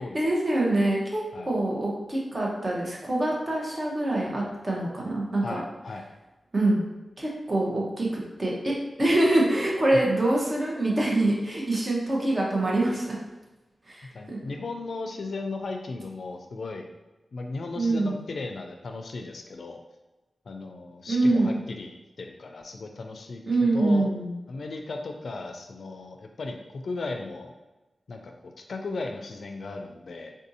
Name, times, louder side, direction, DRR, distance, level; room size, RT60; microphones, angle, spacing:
voice 1, 0.1-5.6 6.5-6.9 7.2-13.2 13.9-14.4 17.7-18.2 21.1-21.6 23.5-24.3, right 2 dB, 35° right, -3 dB, 0.8 m, -25 dB
voice 2, 5.4-6.0 14.1-16.9 17.3-19.8 20.5-24.1 24.5-27.5 28.1-30.4, left 3 dB, 70° left, 3 dB, 0.3 m, -36 dB
3.5 x 2.6 x 2.7 m, 1.1 s
wide cardioid pair, 105°, 0 cm